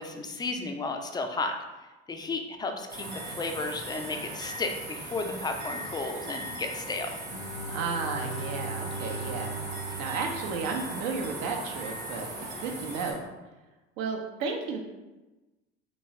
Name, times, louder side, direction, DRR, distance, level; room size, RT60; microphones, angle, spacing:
voice 1, 0.0-1.6 2.1-7.1 9.9-10.0, left 3 dB, 15° left, 5 dB, 0.3 m, -33 dB
sound 1, 2.9-13.1, right 2 dB, 85° right, 1.1 m, -39 dB
Bowed string instrument, 7.3-11.2, right 2 dB, 90° left, 0.8 m, -39 dB
voice 2, 7.7-13.2 14.0-14.8, right 4 dB, 60° right, 2 dB, 0.7 m, -33 dB
3.0 x 3.0 x 2.8 m, 1.1 s
hypercardioid pair, 65°, 34 cm